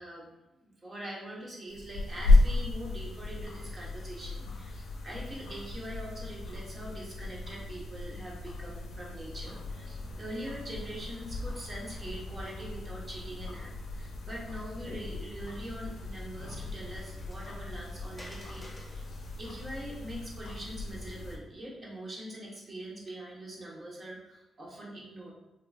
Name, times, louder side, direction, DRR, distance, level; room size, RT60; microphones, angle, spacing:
voice 1, 0.0-25.3, right 1 dB, 40° right, -4 dB, 1.2 m, -43 dB
sound 1, 1.7-21.4, left 2 dB, 85° left, 0.5 m, -33 dB
Water, 16.0-21.3, left 1 dB, 10° left, 1.1 m, -56 dB
3.8 x 2.9 x 2.4 m, 1.0 s
cardioid pair, 70°, 0 cm